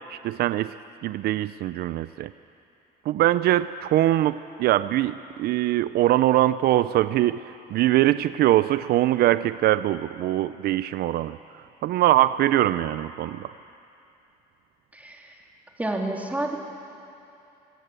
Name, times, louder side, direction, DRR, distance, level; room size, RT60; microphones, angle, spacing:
voice 1, 0.1-0.7 1.0-2.3 3.1-11.4 11.8-13.5, right 14 dB, 70° right, 14 dB, 0.5 m, -22 dB
voice 2, 14.9-15.4 15.8-16.6, right 1 dB, 10° right, 0 dB, 3.0 m, -29 dB
25.0 x 16.5 x 8.2 m, 2.7 s
cardioid pair, 110°, 17 cm